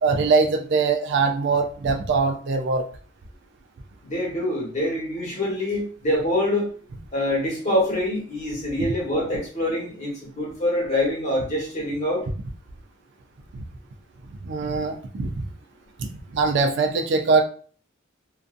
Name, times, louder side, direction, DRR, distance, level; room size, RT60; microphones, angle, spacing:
voice 1, 0.0-2.8 14.4-15.4 16.0-16.1 16.3-17.4, right 4 dB, 60° right, 5 dB, 0.4 m, -22 dB
voice 2, 4.0-6.7 7.1-12.2, left 1 dB, 35° left, -4 dB, 1.2 m, -25 dB
2.5 x 2.3 x 2.4 m, 0.43 s
head